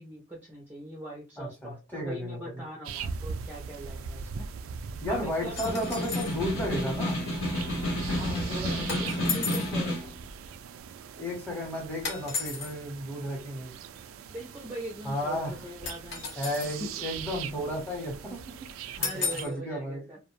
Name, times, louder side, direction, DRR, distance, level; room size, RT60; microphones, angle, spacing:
voice 1, 0.0-4.5 5.1-5.9 8.0-10.1 14.3-16.9 19.0-20.2, right 1 dB, 10° right, -2 dB, 0.4 m, -41 dB
voice 2, 1.4-2.6 5.0-7.2 11.1-13.7 15.0-15.6 16.4-18.4 19.0-20.0, equal, 10° left, -1 dB, 0.8 m, -33 dB
sound 1, 2.8-19.4, right 5 dB, 85° right, 0.3 m, -40 dB
Snare drum, 5.6-10.1, left 1 dB, 90° left, 1.0 m, -31 dB
sound 2, 5.6-6.4 8.9-9.8 12.0-12.7 15.9-16.8 19.0-19.6, left 4 dB, 55° left, 0.9 m, -34 dB
2.5 x 2.1 x 3.0 m, 0.28 s
head